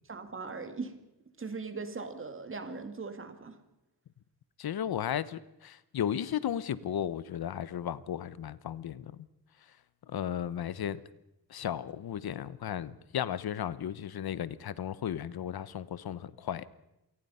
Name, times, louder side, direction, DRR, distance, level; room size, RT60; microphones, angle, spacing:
voice 1, 0.1-0.9 1.4-3.6, right 4 dB, 30° right, 8 dB, 2.1 m, -39 dB
voice 2, 4.6-9.1 10.1-11.0 11.5-16.6, left 9 dB, 60° left, 18 dB, 0.9 m, -35 dB
27.5 x 19.0 x 5.6 m, 0.90 s
wide cardioid pair, 175°, 41 cm